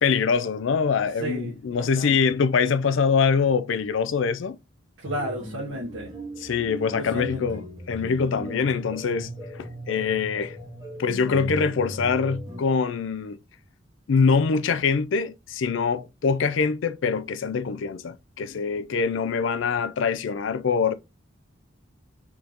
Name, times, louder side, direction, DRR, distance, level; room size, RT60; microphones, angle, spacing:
voice 1, 0.0-4.6 6.4-10.6 11.0-13.4 14.1-20.9, left 5 dB, 70° left, 0.4 m, -24 dB
voice 2, 1.2-2.2 5.0-6.1 6.9-7.4, equal, 75° right, 1.1 m, -32 dB
sound 1, 5.1-12.6, right 1 dB, 20° right, 0.8 m, -38 dB
3.8 x 3.6 x 2.9 m
head